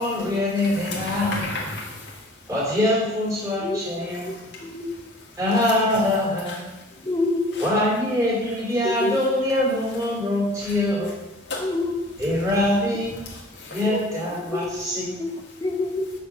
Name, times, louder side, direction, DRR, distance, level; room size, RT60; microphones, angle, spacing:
voice 1, 0.0-1.4 2.5-4.3 5.4-6.7 7.6-11.2 12.2-13.2 13.7-15.2, left 1 dB, 15° right, -6 dB, 3.1 m, -23 dB
voice 2, 0.7-2.5 4.4-5.0 5.9-6.0 6.5-7.1 7.5-7.7 10.6-10.7 11.4-11.6 13.3-13.8, left 2 dB, 75° left, -3 dB, 1.7 m, -35 dB
voice 3, 4.2-4.9 7.0-7.6 8.8-9.2 11.5-12.0 13.8-15.3 15.6-16.1, left 2 dB, 20° left, 3 dB, 0.8 m, -28 dB
5.8 x 5.6 x 6.5 m, 1.0 s
head